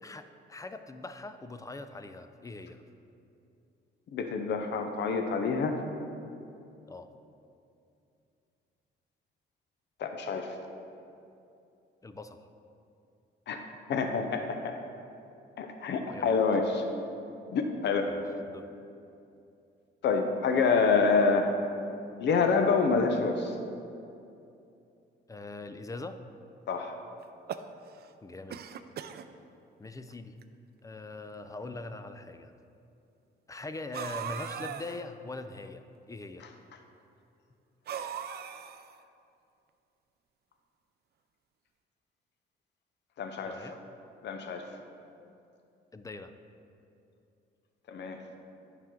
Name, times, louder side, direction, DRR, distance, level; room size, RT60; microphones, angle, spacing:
voice 1, 0.0-2.8 6.9-7.1 12.0-12.4 16.1-16.3 18.1-18.2 18.5-18.7 25.3-26.2 28.2-28.6 29.8-30.3 30.8-32.5 33.5-36.4 43.5-43.8 45.9-46.3, left 2 dB, 15° left, 9 dB, 0.4 m, -42 dB
voice 2, 4.1-5.8 10.0-10.6 13.5-13.6 13.9-14.8 15.6-16.9 17.5-18.1 20.0-21.6 22.2-23.6 26.7-27.0 36.4-36.8 38.4-38.6 43.2-43.7 44.2-44.8 47.9-48.2, left 4 dB, 60° left, 5 dB, 0.7 m, -27 dB
sound 1, 27.2-28.1 28.5-29.3 30.1-30.2 30.4-30.5 31.5-31.6 33.9-35.0 37.9-39.0, right 8 dB, 55° right, 0.4 m, -39 dB
9.3 x 5.9 x 3.8 m, 2.6 s
cardioid pair, 90°, 20 cm